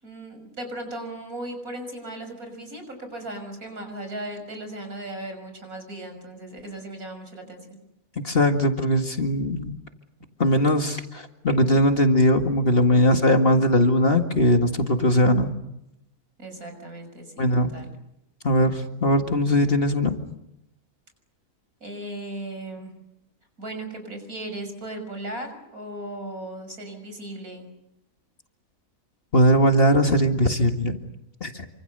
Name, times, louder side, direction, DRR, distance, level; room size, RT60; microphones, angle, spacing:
voice 1, 0.0-7.8 16.4-17.5 17.7-17.9 21.8-22.9 23.6-27.7, right 1 dB, 75° right, 6 dB, 6.7 m, -37 dB
voice 2, 8.2-9.7 10.4-15.5 17.4-17.7 18.4-20.2 29.3-31.0 31.4-31.7, left 1 dB, 40° left, 5 dB, 2.0 m, -20 dB
28.0 x 26.0 x 6.7 m, 0.84 s
omnidirectional pair, 1.5 m